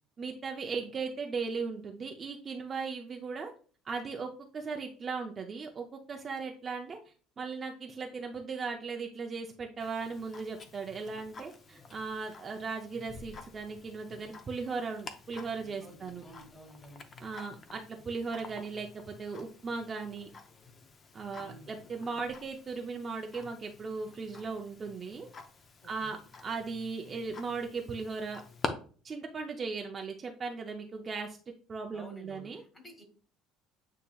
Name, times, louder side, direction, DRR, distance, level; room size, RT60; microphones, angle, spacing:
voice 1, 0.2-3.5 3.8-7.0 7.4-16.2 17.2-20.3 21.1-25.3 25.9-28.4 29.0-31.4 31.7-32.6, right 4 dB, 30° right, 2 dB, 0.5 m, -37 dB
Tick-tock, 9.8-28.7, left 4 dB, 30° left, 0.6 m, -48 dB
voice 2, 15.8-17.1 21.4-21.7 25.8-26.2 31.9-33.0, equal, 10° left, 3 dB, 1.2 m, -52 dB
8.4 x 2.8 x 2.3 m, 0.40 s
cardioid pair, 145°, 0 cm